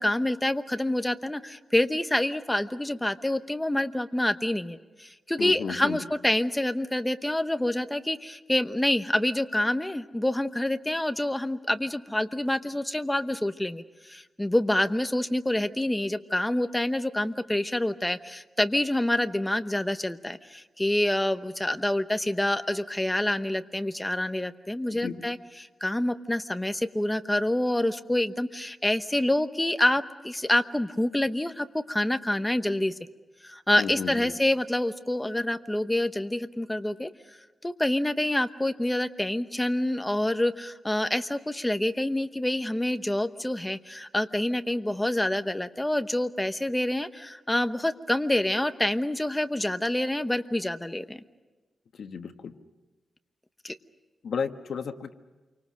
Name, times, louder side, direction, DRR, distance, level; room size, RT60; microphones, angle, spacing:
voice 1, 0.0-32.9 33.4-37.1 37.6-51.2 53.6-53.7, left 1 dB, 10° left, 9 dB, 1.0 m, -27 dB
voice 2, 5.4-6.0 24.9-25.2 33.8-34.3 52.0-52.5 54.2-55.2, left 6 dB, 70° left, 6 dB, 1.5 m, -33 dB
28.5 x 24.5 x 6.3 m, 1.2 s
wide cardioid pair, 115°, 0 cm